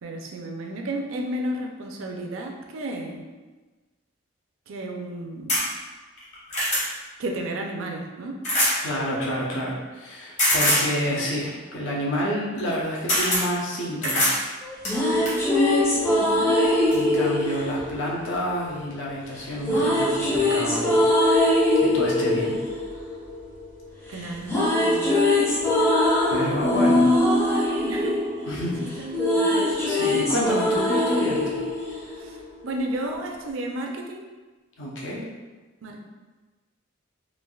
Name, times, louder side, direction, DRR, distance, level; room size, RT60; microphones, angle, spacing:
voice 1, 0.0-3.3 4.7-5.6 7.2-8.5 11.1-11.6 16.1-16.6 24.1-25.3 26.6-27.0 27.9-28.3 29.0-29.6 30.8-31.1 32.2-34.2 35.8-36.0, right 1 dB, 70° right, 2 dB, 0.4 m, -33 dB
sound 1, 5.5-5.6 6.2-6.8 8.4-8.8 10.4-10.9 12.6-12.7 13.1-13.4 14.0-14.4 14.8-15.4 16.4-16.5 16.9-17.0, left 1 dB, 35° left, 0.9 m, -22 dB
voice 2, 8.8-14.3 16.9-22.6 26.3-27.1 28.4-28.9 29.9-31.6 34.8-35.2, equal, 65° left, -4 dB, 0.7 m, -29 dB
sound 2, 14.6-18.8 19.6-23.9 24.1-32.7, left 1 dB, 10° left, 0.4 m, -22 dB
3.2 x 2.4 x 2.3 m, 1.3 s
head